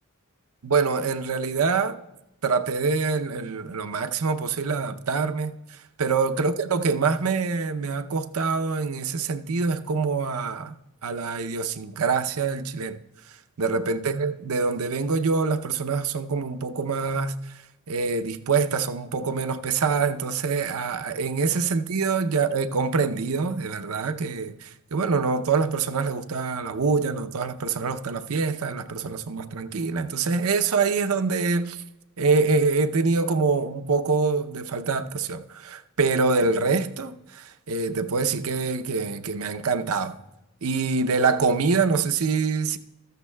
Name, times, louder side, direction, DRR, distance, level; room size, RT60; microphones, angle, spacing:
voice 1, 0.6-2.0 2.4-5.6 6.0-10.7 11.0-13.0 13.6-17.4 17.9-31.8 32.2-40.2 40.6-42.8, right 4 dB, 70° right, 0.6 m, -25 dB
14.0 x 13.5 x 2.2 m
head